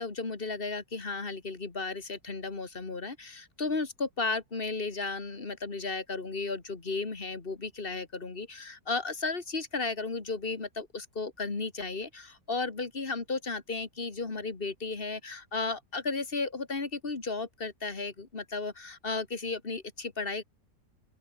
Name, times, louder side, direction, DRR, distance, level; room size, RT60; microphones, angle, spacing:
voice 1, 0.0-20.4, left 3 dB, 30° left, 2.2 m, -34 dB
open air
omnidirectional pair, 1.9 m